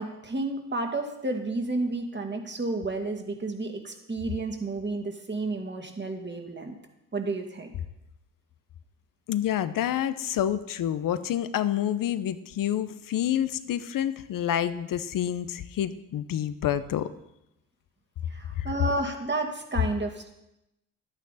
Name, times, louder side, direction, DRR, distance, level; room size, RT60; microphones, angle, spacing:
voice 1, 0.0-6.8 7.1-7.7 18.3-20.3, right 2 dB, 30° right, 4 dB, 2.2 m, -31 dB
voice 2, 9.3-17.1 18.5-18.7, left 11 dB, 65° left, 13 dB, 0.8 m, -28 dB
11.5 x 9.1 x 4.1 m, 0.87 s
supercardioid pair, 55°, 36 cm